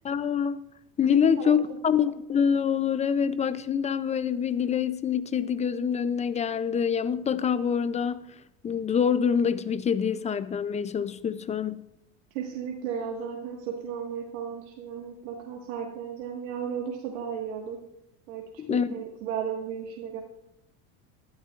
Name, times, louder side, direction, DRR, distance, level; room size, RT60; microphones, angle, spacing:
voice 1, 0.0-0.6 1.0-8.2 8.6-11.8 18.6-18.9, left 7 dB, 20° left, 0.4 m, -25 dB
voice 2, 1.1-1.8 12.3-17.8 18.3-18.4 18.7-20.2, right 7 dB, 80° right, 1.7 m, -35 dB
15.5 x 12.0 x 2.4 m
supercardioid pair, 110°, 41 cm